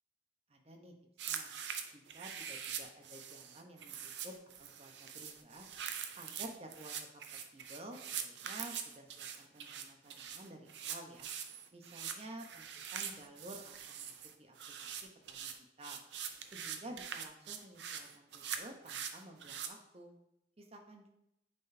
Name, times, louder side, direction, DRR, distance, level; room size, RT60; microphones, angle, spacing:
voice 1, 0.5-0.9 1.2-1.5 1.9-4.3 4.6-5.7 6.1-7.0 7.5-11.3 11.7-14.1 14.4-14.6 14.8-15.5 15.8-16.0 16.5-20.1 20.6-21.1, right 1 dB, 35° right, 2 dB, 0.8 m, -52 dB
sound 1, 1.2-19.7, right 8 dB, 80° right, 0.5 m, -43 dB
8.9 x 3.9 x 2.7 m, 0.82 s
head